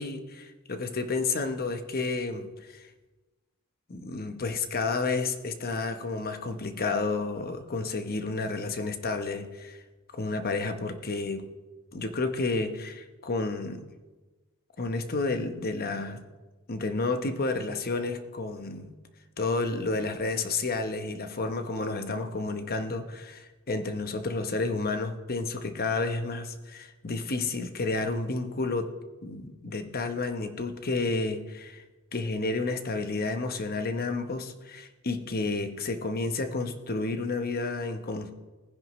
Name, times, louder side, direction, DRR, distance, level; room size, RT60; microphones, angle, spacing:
voice 1, 0.0-2.9 3.9-9.8 10.1-11.5 11.9-13.8 14.8-16.2 16.7-18.9 19.4-28.9 29.2-31.8 32.1-38.3, left 3 dB, 45° left, 8 dB, 1.0 m, -31 dB
19.5 x 10.0 x 3.1 m, 1.2 s
head